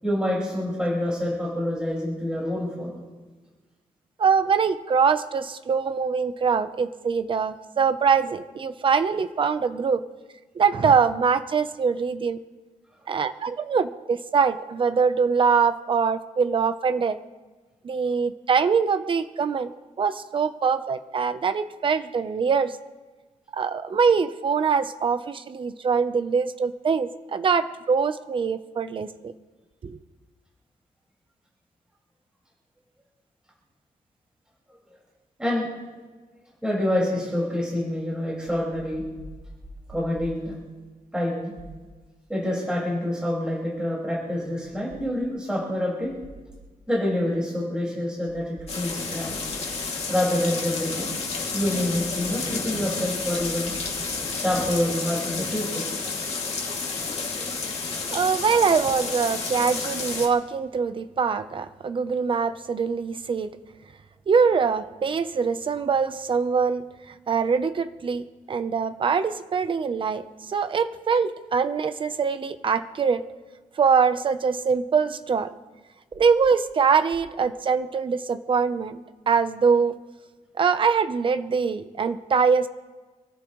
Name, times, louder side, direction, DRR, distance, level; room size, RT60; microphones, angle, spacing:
voice 1, 0.0-3.0 35.4-35.7 36.6-39.0 39.9-40.5 41.1-41.5 42.3-46.1 46.9-49.4 50.1-51.1 51.5-53.7 54.4-55.9, left 1 dB, 5° right, -5 dB, 5.2 m, -27 dB
voice 2, 4.2-10.0 10.5-12.4 13.1-17.2 17.8-22.7 23.5-29.3 29.8-30.0 58.1-63.6 64.3-73.2 73.8-75.5 76.1-79.0 79.3-80.0 80.6-82.7, right 5 dB, 35° right, 10 dB, 0.7 m, -23 dB
sound 1, 48.7-60.3, left 4 dB, 45° left, 2.6 m, -30 dB
28.0 x 13.5 x 3.2 m, 1.3 s
wide cardioid pair, 165°, 14 cm